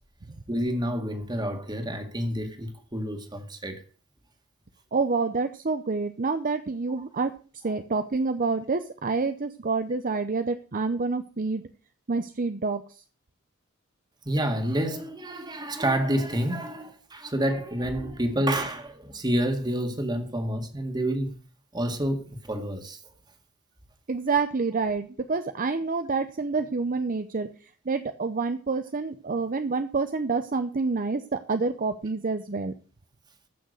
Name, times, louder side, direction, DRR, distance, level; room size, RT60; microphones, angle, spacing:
voice 1, 0.5-3.8 14.2-21.4 21.7-23.0, right 1 dB, 20° right, 2.0 m, -28 dB
voice 2, 4.9-11.6 12.1-13.0 24.1-32.7, right 4 dB, 40° right, 0.7 m, -28 dB
14.5 x 6.4 x 6.4 m
head